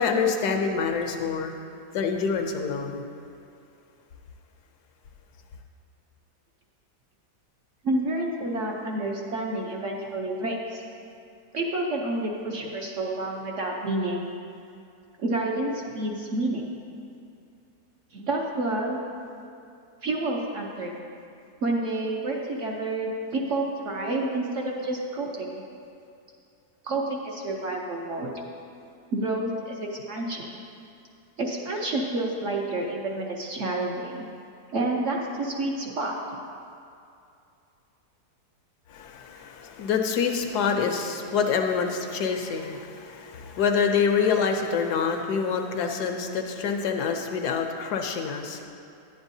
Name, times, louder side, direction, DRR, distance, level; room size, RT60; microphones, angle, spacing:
voice 1, 0.0-1.5 1.9-3.0 38.9-48.7, left 6 dB, 75° left, 4 dB, 1.2 m, -26 dB
voice 2, 7.8-10.8 11.5-14.3 15.2-16.8 18.1-19.0 20.0-20.9 21.6-25.6 26.8-28.3 29.1-30.6 31.4-34.2 34.7-36.1, right 2 dB, 60° right, -1 dB, 0.9 m, -29 dB
10.5 x 8.8 x 2.7 m, 2.6 s
omnidirectional pair, 1.8 m